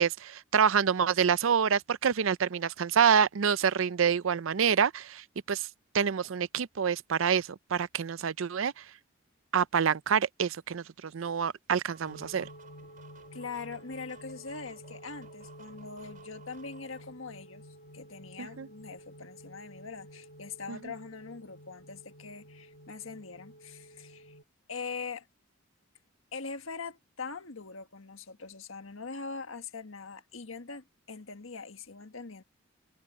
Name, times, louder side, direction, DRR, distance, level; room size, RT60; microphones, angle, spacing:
voice 1, 0.0-5.7 5.9-8.8 9.5-12.5 18.4-18.7 20.7-20.8, right 7 dB, 75° right, 0.5 m, -27 dB
sound 1, 11.8-17.0, right 4 dB, 40° right, 5.9 m, -56 dB
sound 2, 12.1-24.4, equal, 45° left, 1.5 m, -51 dB
voice 2, 13.3-17.6 17.9-24.3 24.7-25.3 26.3-32.4, left 4 dB, 80° left, 1.6 m, -42 dB
head